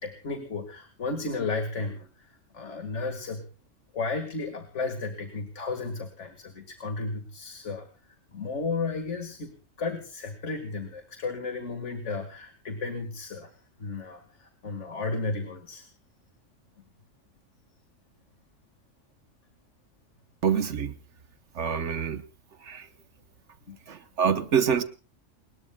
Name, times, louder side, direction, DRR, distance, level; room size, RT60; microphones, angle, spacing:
voice 1, 0.0-3.4 3.9-7.9 8.3-15.9 23.7-23.8, left 3 dB, 70° left, 5 dB, 2.2 m, -34 dB
voice 2, 20.4-20.9 21.5-22.2 22.6-22.9 23.9-24.8, right 7 dB, 70° right, 10 dB, 1.3 m, -26 dB
29.0 x 21.0 x 2.3 m, 0.37 s
omnidirectional pair, 1.3 m